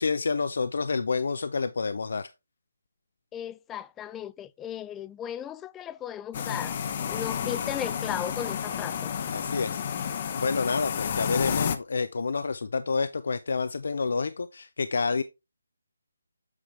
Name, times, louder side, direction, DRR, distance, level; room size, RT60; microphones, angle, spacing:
voice 1, 0.0-2.3 9.3-9.8 10.4-15.2, left 4 dB, 65° left, 0.5 m, -28 dB
voice 2, 3.3-6.8 7.0-9.1, left 10 dB, 10° left, 0.3 m, -36 dB
sound 1, 6.3-11.8, left 7 dB, 35° left, 0.8 m, -31 dB
8.1 x 5.0 x 3.4 m
figure-of-eight pair, 160°, 0 cm